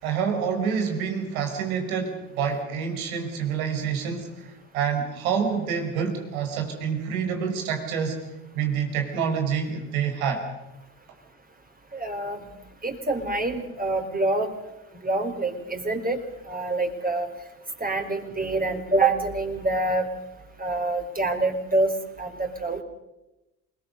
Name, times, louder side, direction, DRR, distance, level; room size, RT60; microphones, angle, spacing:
voice 1, 0.0-4.5 4.7-8.2 8.5-10.4, right 7 dB, 80° right, 4 dB, 4.9 m, -27 dB
voice 2, 11.9-12.4 12.8-14.5 15.0-16.2 16.5-17.3 17.8-20.1 20.6-21.9 22.2-22.8, right 2 dB, 20° right, 4 dB, 4.6 m, -26 dB
28.0 x 20.5 x 6.7 m, 0.97 s
hypercardioid pair, 55°, 42 cm